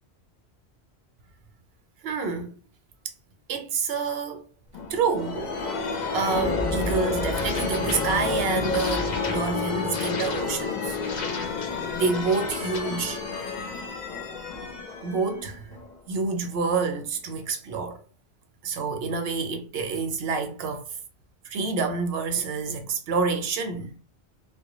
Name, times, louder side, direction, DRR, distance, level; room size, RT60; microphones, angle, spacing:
voice 1, 2.0-2.5 3.5-4.5 4.9-5.5 6.1-11.0 11.4-11.5 11.9-13.2 15.0-15.7 16.1-18.0 18.6-20.9 21.5-24.0, right 4 dB, 70° right, 0.8 m, -28 dB
sound 1, 4.7-16.2, left 4 dB, 55° left, 0.6 m, -29 dB
2.1 x 2.1 x 2.9 m
omnidirectional pair, 1.1 m